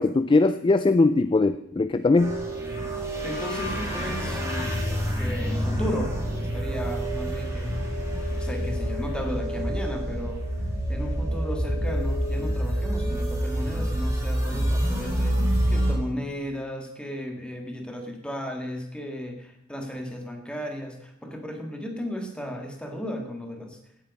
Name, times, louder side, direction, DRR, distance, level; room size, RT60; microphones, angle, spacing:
voice 1, 0.0-2.4, left 3 dB, 25° left, 11 dB, 0.3 m, -20 dB
sound 1, 2.2-15.9, equal, 15° right, 2.7 m, -27 dB
voice 2, 3.2-7.8 8.3-10.4 10.9-23.8, equal, 5° left, 2 dB, 1.8 m, -35 dB
16.5 x 7.7 x 5.3 m, 0.76 s
head